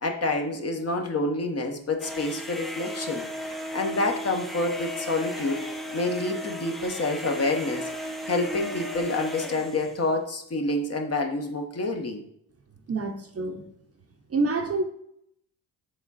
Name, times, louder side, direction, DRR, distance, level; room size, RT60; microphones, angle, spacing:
voice 1, 0.0-3.2 3.7-5.6 5.9-7.9 8.3-12.2, left 2 dB, 35° left, 3 dB, 0.9 m, -28 dB
sound 1, 2.0-10.0, equal, ahead, 0.5 m, -35 dB
voice 2, 12.9-13.6 14.3-14.8, right 3 dB, 35° right, 4 dB, 0.8 m, -27 dB
7.0 x 3.6 x 4.1 m, 0.74 s
cardioid pair, 100°, 41 cm